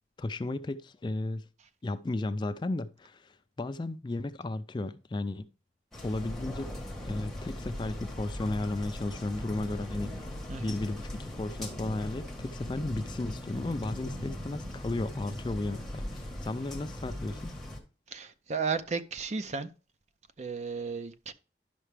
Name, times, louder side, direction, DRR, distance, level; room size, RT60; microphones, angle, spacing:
voice 1, 0.2-1.5 1.8-5.5 6.0-6.7 7.0-10.2 10.6-17.5, left 2 dB, 25° left, 0.3 m, -34 dB
sound 1, 5.9-17.8, left 1 dB, ahead, 1.3 m, -39 dB
voice 2, 10.5-10.8 18.1-19.7 20.4-21.3, right 5 dB, 40° right, 0.5 m, -34 dB
11.0 x 5.7 x 3.3 m
head